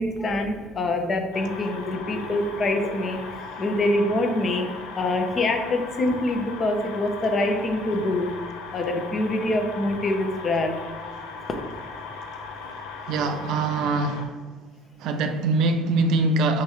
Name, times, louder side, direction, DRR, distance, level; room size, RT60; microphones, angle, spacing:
voice 1, 0.0-4.7 5.0-8.3 8.7-10.7, left 2 dB, 40° left, 0.8 m, -25 dB
sound 1, 1.3-14.3, left 4 dB, 75° left, 0.6 m, -38 dB
voice 2, 13.1-14.4 15.0-16.6, right 3 dB, 65° right, 0.4 m, -23 dB
3.6 x 3.1 x 4.5 m
hypercardioid pair, 60°, 0 cm